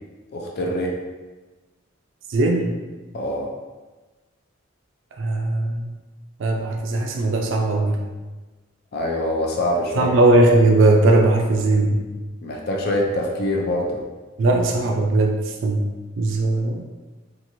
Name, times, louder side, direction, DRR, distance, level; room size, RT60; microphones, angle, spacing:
voice 1, 0.3-1.0 3.1-3.5 8.9-10.1 12.4-14.0, left 1 dB, 50° left, -1 dB, 0.4 m, -24 dB
voice 2, 2.3-2.7 5.2-5.9 6.4-8.0 10.0-12.0 14.4-15.3 15.6-15.8 16.2-16.8, right 2 dB, 65° right, 1 dB, 0.3 m, -18 dB
2.9 x 2.4 x 2.6 m, 1.2 s
head